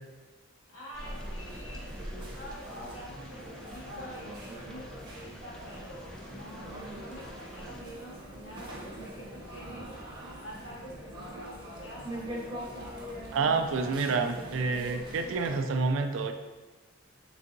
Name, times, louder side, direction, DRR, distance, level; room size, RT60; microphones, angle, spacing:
voice 1, 0.7-9.9 10.4-12.3, equal, 75° left, -6 dB, 1.3 m, -47 dB
sound 1, 0.9-7.8, equal, 5° left, 0.3 m, -46 dB
sound 2, 1.0-15.6, equal, 25° right, 0.7 m, -43 dB
voice 2, 13.3-16.3, right 4 dB, 75° right, 7 dB, 0.4 m, -28 dB
4.0 x 3.3 x 2.6 m, 1.2 s
head